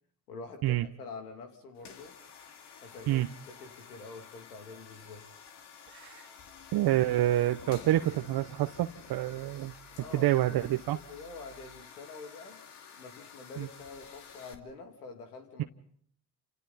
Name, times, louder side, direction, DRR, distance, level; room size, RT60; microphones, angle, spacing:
voice 1, 0.3-2.1 2.8-5.3 10.0-10.4 10.9-12.6 12.9-15.6, left 4 dB, 90° left, 5 dB, 3.0 m, -46 dB
sound 1, 1.8-14.5, left 6 dB, 65° left, 2.7 m, -51 dB
voice 2, 5.9-6.3 6.7-9.7 10.1-11.0 13.6-13.7, right 14 dB, 55° right, 7 dB, 1.0 m, -27 dB
29.0 x 27.5 x 4.2 m, 0.63 s
hypercardioid pair, 55°, 44 cm